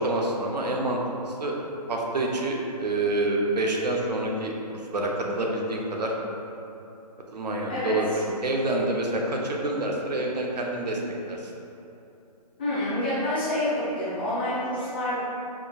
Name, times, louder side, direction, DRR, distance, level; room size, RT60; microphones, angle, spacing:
voice 1, 0.0-1.6 1.9-6.1 7.3-8.1 8.4-11.0 11.3-11.5, right 2 dB, 75° right, -1 dB, 0.7 m, -27 dB
voice 2, 7.7-8.2 12.6-15.2, left 1 dB, 15° left, -13 dB, 0.6 m, -28 dB
5.0 x 2.5 x 2.3 m, 2.8 s
hypercardioid pair, 175°, 21 cm